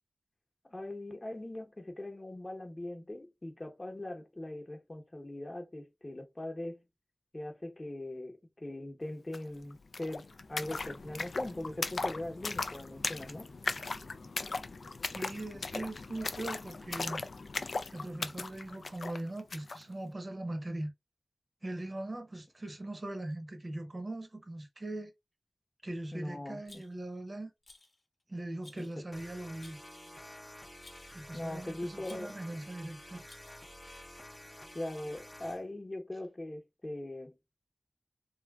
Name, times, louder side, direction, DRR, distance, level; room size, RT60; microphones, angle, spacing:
voice 1, 0.7-6.8 7.3-13.5 26.1-26.8 28.7-29.0 31.3-32.4 34.7-37.3, left 1 dB, 30° left, 0.9 m, -41 dB
sound 1, 9.3-9.4 9.6-19.8, left 3 dB, 85° left, 0.3 m, -38 dB
voice 2, 15.0-17.2 17.9-20.9 21.6-25.1 25.8-27.5 28.3-29.8 31.1-33.3, right 1 dB, 40° right, 0.8 m, -40 dB
Rattle, 26.7-27.2 27.6-28.0 28.6-29.0 29.6-30.1 30.8-31.2 32.0-32.5 33.3-33.8, left 2 dB, 60° left, 0.8 m, -57 dB
sound 2, 29.1-35.6, left 1 dB, 15° left, 0.5 m, -50 dB
3.3 x 2.4 x 2.3 m
wide cardioid pair, 80°, 0 cm